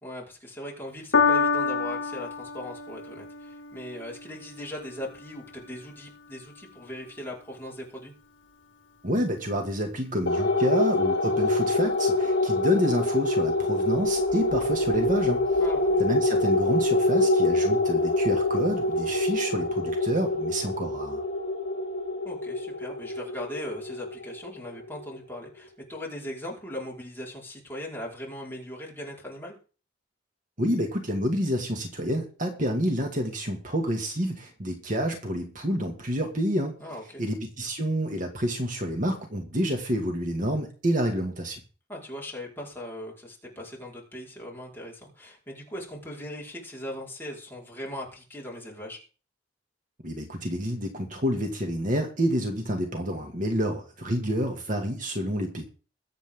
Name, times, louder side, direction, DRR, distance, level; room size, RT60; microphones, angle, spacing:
voice 1, 0.0-8.1 15.6-16.0 22.2-29.6 36.8-37.2 41.9-49.0, left 1 dB, 10° left, -3 dB, 4.8 m, -39 dB
Piano, 1.1-7.7 8.5-8.6, left 5 dB, 75° left, 1.0 m, -30 dB
voice 2, 9.0-15.4 16.0-21.2 30.6-36.8 37.2-41.6 50.0-55.6, equal, 45° right, 3 dB, 2.2 m, -28 dB
sound 1, 10.3-25.0, left 2 dB, 55° left, 2.9 m, -25 dB
22.0 x 8.4 x 3.8 m, 0.37 s
head